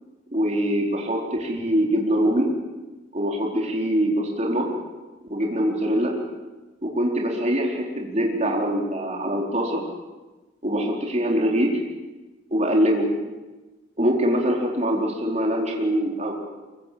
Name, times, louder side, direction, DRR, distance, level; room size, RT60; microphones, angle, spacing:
voice 1, 0.3-2.5 3.1-4.7 5.3-6.1 6.8-9.8 10.6-11.8 12.5-13.1 14.0-16.3, equal, 35° right, 0 dB, 4.3 m, -23 dB
24.0 x 23.0 x 7.7 m, 1.2 s
head